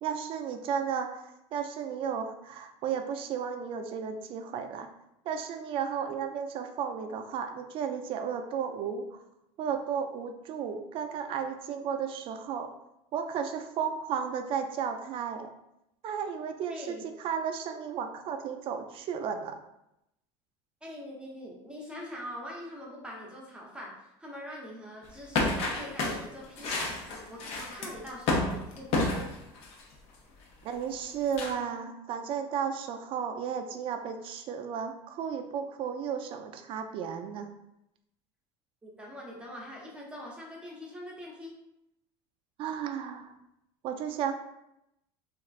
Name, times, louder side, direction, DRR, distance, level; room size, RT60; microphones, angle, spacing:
voice 1, 0.0-4.9 5.3-9.2 9.6-12.7 13.1-15.5 16.0-19.6 30.6-37.5 42.6-43.3 43.8-44.3, right 7 dB, 45° right, 6 dB, 0.3 m, -34 dB
voice 2, 16.7-17.0 20.8-27.0 27.3-29.3 38.8-41.5, left 1 dB, 10° right, -3 dB, 0.7 m, -43 dB
sound 1, 25.4-29.8 31.3-31.5, left 2 dB, 55° left, 0.6 m, -30 dB
3.0 x 2.4 x 2.4 m, 0.85 s
supercardioid pair, 120°, 13 cm